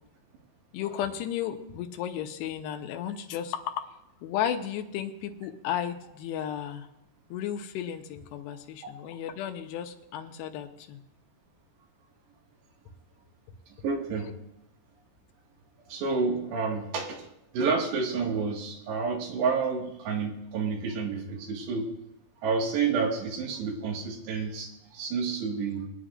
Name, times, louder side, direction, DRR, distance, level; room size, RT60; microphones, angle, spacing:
voice 1, 0.7-3.9 4.2-6.9 7.3-11.0, left 10 dB, 80° left, 5 dB, 2.9 m, -34 dB
voice 2, 13.8-14.3 15.9-17.2 17.5-21.9 22.4-25.9, right 5 dB, 75° right, 0 dB, 4.0 m, -29 dB
23.0 x 9.6 x 2.5 m, 0.86 s
omnidirectional pair, 5.0 m